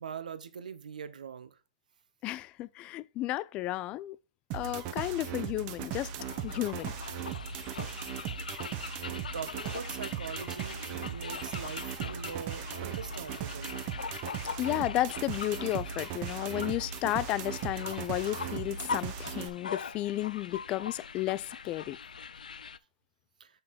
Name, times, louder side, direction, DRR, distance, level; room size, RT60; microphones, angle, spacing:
voice 1, 0.0-1.5 9.3-13.8 23.4-23.5, right 7 dB, 80° right, 1.0 m, -42 dB
voice 2, 2.2-4.2 4.5-6.1 6.4-6.9 14.6-22.0, left 15 dB, 25° left, 0.3 m, -33 dB
sound 1, 4.5-19.5, right 9 dB, 35° right, 1.0 m, -38 dB
sound 2, 6.2-22.8, left 6 dB, 85° left, 0.5 m, -42 dB
6.8 x 5.5 x 4.2 m
hypercardioid pair, 140°, 4 cm